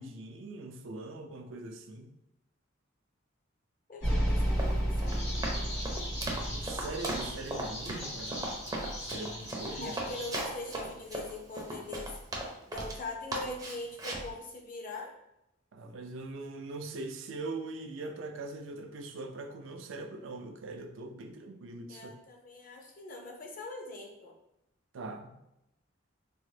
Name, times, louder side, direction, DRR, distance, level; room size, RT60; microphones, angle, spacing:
voice 1, 0.0-2.1 6.4-8.6 9.0-10.0 15.7-22.1 24.9-25.3, right 2 dB, 70° right, 5 dB, 0.4 m, -41 dB
voice 2, 3.9-5.9 9.8-12.1 12.7-15.1 21.9-24.3, left 2 dB, 45° left, 1 dB, 0.6 m, -42 dB
sound 1, 4.0-8.3, equal, 80° left, 1.4 m, -32 dB
Run, 4.4-13.0 13.3-14.3, right 1 dB, 20° right, 0.5 m, -37 dB
sound 2, 5.1-10.3, left 1 dB, 60° left, 1.3 m, -42 dB
3.7 x 2.0 x 3.2 m, 0.86 s
head